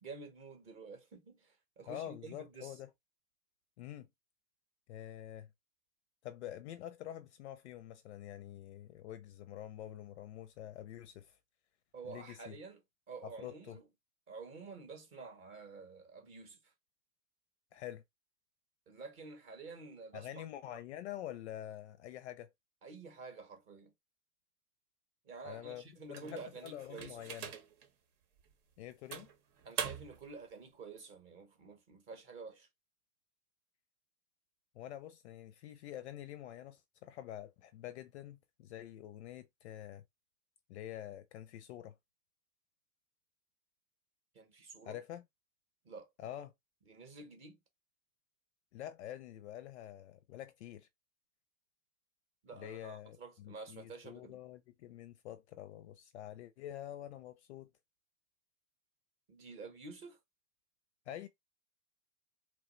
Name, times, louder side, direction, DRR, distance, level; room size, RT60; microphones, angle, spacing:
voice 1, 0.0-2.7 11.9-12.8 13.1-13.8 14.3-16.7 18.9-20.4 22.8-23.9 25.2-27.2 29.6-32.7 44.3-45.0 45.8-46.1 46.9-47.6 52.4-54.4 59.3-60.2, right 4 dB, 25° right, 0.8 m, -50 dB
voice 2, 1.9-2.9 3.8-4.1 4.9-5.5 6.2-11.4 12.0-12.6 13.2-13.8 17.7-18.0 20.1-22.5 25.4-25.8 26.1-27.5 28.8-29.3 34.7-40.0 40.7-42.0 44.8-45.2 46.2-46.5 48.7-50.9 52.5-57.7 61.1-61.3, left 12 dB, 45° left, 0.4 m, -47 dB
sound 1, 26.1-27.9 28.4-28.5 29.1-30.3, right 7 dB, 65° right, 1.0 m, -43 dB
3.0 x 2.1 x 3.0 m
hypercardioid pair, 125°, 48 cm